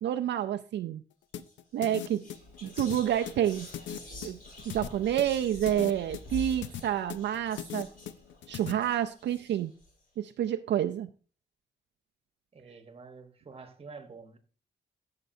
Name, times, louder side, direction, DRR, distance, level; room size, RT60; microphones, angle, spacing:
voice 1, 0.0-1.0 1.7-2.2 2.6-3.7 4.2-4.4 4.7-7.9 8.5-9.7 10.2-11.1, right 10 dB, 75° right, 0.4 m, -29 dB
sound 1, 1.3-8.7, left 10 dB, 85° left, 0.6 m, -40 dB
Whispering, 1.4-1.5 1.8-9.9, left 1 dB, 50° left, 3.7 m, -46 dB
voice 2, 12.5-14.4, right 4 dB, 30° right, 1.1 m, -48 dB
13.5 x 6.7 x 2.6 m
wide cardioid pair, 135°, 19 cm